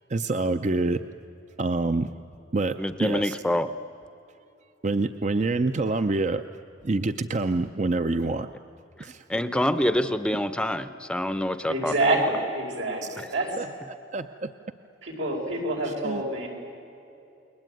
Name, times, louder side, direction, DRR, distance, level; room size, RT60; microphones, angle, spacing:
voice 1, 0.1-1.1 1.6-2.1 2.5-3.4 4.8-6.4 6.8-8.5 9.0-9.2 13.0-13.1 13.6-13.7 14.1-14.5 15.8-16.2, right 3 dB, 40° right, 9 dB, 0.6 m, -26 dB
voice 2, 2.8-3.7 9.0-12.0 13.2-13.3, left 1 dB, 5° left, 11 dB, 0.7 m, -26 dB
voice 3, 11.7-13.6 15.0-16.5, right 2 dB, 85° right, 0 dB, 5.4 m, -27 dB
29.0 x 21.5 x 9.2 m, 2.8 s
head